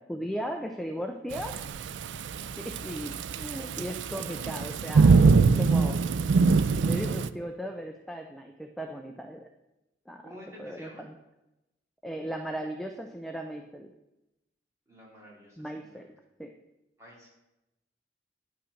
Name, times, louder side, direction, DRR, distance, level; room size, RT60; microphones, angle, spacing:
voice 1, 0.0-1.6 2.6-6.0 6.8-9.5 10.1-11.1 12.0-13.9 15.6-16.1 16.4-16.5, equal, ahead, 4 dB, 0.5 m, -37 dB
Thunderstorm / Rain, 1.3-7.3, right 4 dB, 85° right, 0.4 m, -23 dB
voice 2, 10.2-11.1 14.9-16.1 17.0-17.3, equal, 15° right, -4 dB, 2.9 m, -49 dB
9.8 x 5.8 x 6.4 m, 0.95 s
head